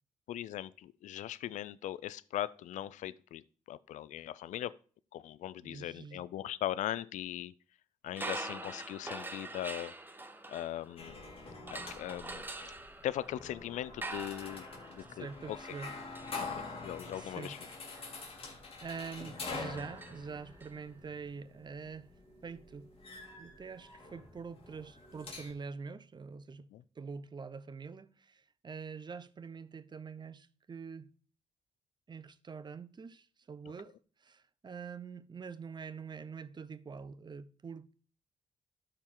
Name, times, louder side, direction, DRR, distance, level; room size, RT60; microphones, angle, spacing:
voice 1, 0.3-4.7 5.1-7.5 8.0-9.9 10.5-11.3 11.7-12.5 13.0-14.7 14.9-15.6 16.6-17.6 26.7-26.8, left 12 dB, 85° left, 0.4 m, -39 dB
voice 2, 5.6-6.2 15.1-15.9 17.2-17.5 18.8-22.1 22.4-22.9 23.4-26.7 27.0-31.1 32.1-37.9, right 5 dB, 35° right, 0.6 m, -45 dB
sound 1, 8.1-11.2 11.7-20.7, right 2 dB, 15° right, 1.0 m, -46 dB
sound 2, 11.0-25.5, left 3 dB, 50° left, 2.5 m, -46 dB
12.5 x 4.5 x 3.8 m
cardioid pair, 75°, 12 cm